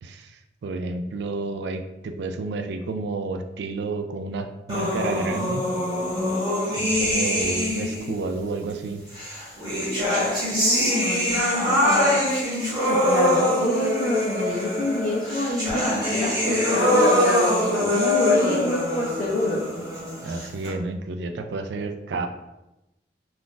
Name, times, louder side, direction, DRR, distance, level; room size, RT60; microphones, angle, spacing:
voice 1, 0.0-5.6 6.8-9.0 20.2-22.3, right 3 dB, 70° right, 7 dB, 0.3 m, -30 dB
sound 1, 4.7-8.1 9.1-20.7, left 1 dB, 20° right, 1.2 m, -23 dB
voice 2, 10.5-12.2 12.8-19.7, left 1 dB, 45° left, -5 dB, 0.5 m, -27 dB
2.4 x 2.4 x 3.7 m, 0.96 s
head